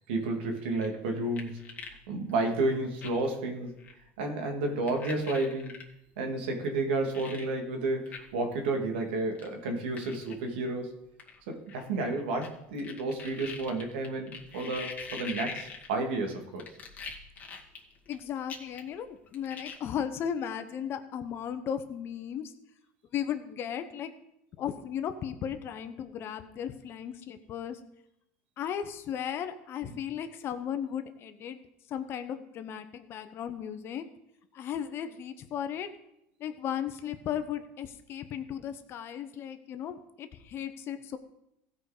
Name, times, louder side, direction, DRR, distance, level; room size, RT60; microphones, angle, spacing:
voice 1, 0.1-1.6 2.1-3.8 4.2-5.8 6.2-10.9 11.5-16.7 29.9-30.0, right 2 dB, 85° right, 3 dB, 2.1 m, -31 dB
sound 1, 0.7-2.0 2.3-2.4 3.0-3.3 3.8-3.9 4.9-5.8 6.6-6.7 7.1-7.5 8.1-8.2 8.5-8.6 9.4-9.5 10.0-10.3 11.2-12.5 12.8-16.2 16.6-18.1 18.5-19.0 19.3-19.8, left 5 dB, 30° left, 2.1 m, -42 dB
voice 2, 18.1-22.5 23.1-24.1 24.6-27.8 28.6-31.6 31.9-34.1 34.5-35.9 36.4-41.2, left 9 dB, 45° left, 9 dB, 1.0 m, -36 dB
15.5 x 5.3 x 5.0 m, 0.80 s
supercardioid pair, 110°, 6 cm